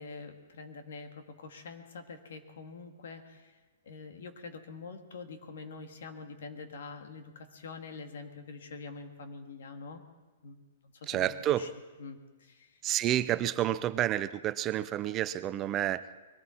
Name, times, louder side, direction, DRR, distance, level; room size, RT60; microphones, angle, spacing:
voice 1, 0.0-3.6 3.9-10.0 10.4-10.6 10.8-11.7 12.0-12.8, left 4 dB, 75° left, 6 dB, 2.0 m, -45 dB
voice 2, 11.1-11.7 12.8-16.0, right 12 dB, 25° right, 14 dB, 0.5 m, -29 dB
22.0 x 14.5 x 4.5 m, 1.2 s
hypercardioid pair, 150°, 0 cm